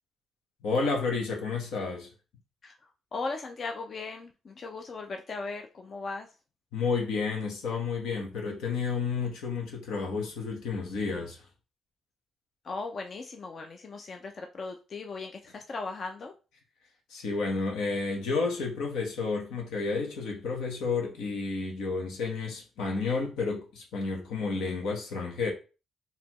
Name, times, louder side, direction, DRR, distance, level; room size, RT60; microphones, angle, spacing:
voice 1, 0.6-2.1 6.7-11.4 17.1-25.5, left 4 dB, 85° left, 1.2 m, -31 dB
voice 2, 2.6-6.3 12.6-16.3, left 3 dB, 45° left, 0.5 m, -38 dB
4.1 x 2.9 x 3.0 m
cardioid pair, 90°, 0 cm